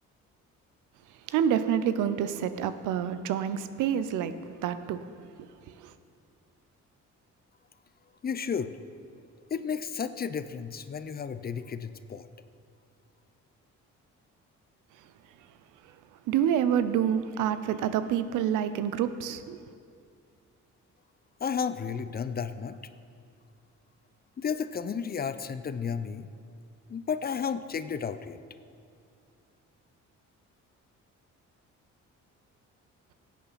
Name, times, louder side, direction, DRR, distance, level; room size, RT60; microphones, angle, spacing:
voice 1, 1.3-4.3 4.6-5.0 5.4-5.5 5.8-5.9 16.3-19.6, right 9 dB, 90° right, 12 dB, 0.6 m, -27 dB
voice 2, 8.2-8.7 9.5-12.3 21.4-22.8 24.4-26.3 26.9-28.4, left 6 dB, 30° left, 12 dB, 0.5 m, -32 dB
16.0 x 8.3 x 4.1 m, 2.3 s
cardioid pair, 90°, 30 cm